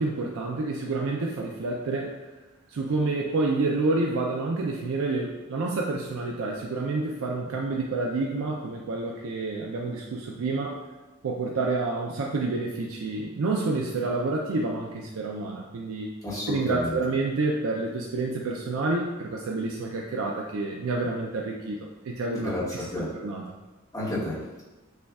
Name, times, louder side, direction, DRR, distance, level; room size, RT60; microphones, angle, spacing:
voice 1, 0.0-2.1 2.7-10.8 11.2-16.1 16.5-21.8 22.0-22.9 23.2-23.4, right 3 dB, 80° right, -1 dB, 0.4 m, -28 dB
voice 2, 16.2-17.0 22.4-22.6 22.9-23.1 23.9-24.6, left 1 dB, 15° left, -9 dB, 1.1 m, -31 dB
6.6 x 2.3 x 2.3 m, 1.1 s
head